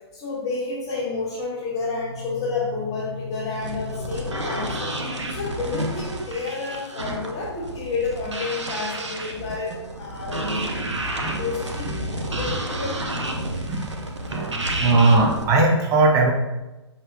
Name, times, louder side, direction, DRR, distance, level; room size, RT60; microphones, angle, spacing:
voice 1, 0.1-10.7 11.3-13.0, left 3 dB, 20° left, -9 dB, 0.9 m, -30 dB
sound 1, 3.6-15.4, right 1 dB, 90° right, 0.7 m, -30 dB
voice 2, 14.8-16.3, right 3 dB, 20° right, 2 dB, 0.6 m, -18 dB
5.5 x 3.3 x 2.2 m, 1.1 s
figure-of-eight pair, 125°, 15 cm